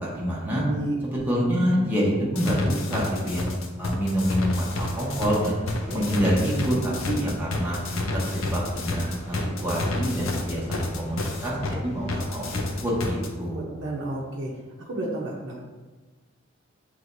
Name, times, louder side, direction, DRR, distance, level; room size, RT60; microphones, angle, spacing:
voice 1, 0.0-0.6 1.0-3.5 3.8-5.6 5.9-7.8 8.1-12.4 12.8-13.7, equal, 10° right, -6 dB, 0.9 m, -26 dB
voice 2, 0.6-1.0 5.8-6.1 13.5-14.5 14.9-15.6, right 2 dB, 60° right, -4 dB, 0.7 m, -32 dB
sound 1, 2.3-11.7 12.1-13.3, left 2 dB, 75° left, 0.6 m, -29 dB
sound 2, 4.0-13.1, left 1 dB, 35° left, 0.5 m, -40 dB
6.3 x 3.1 x 2.6 m, 1.2 s
head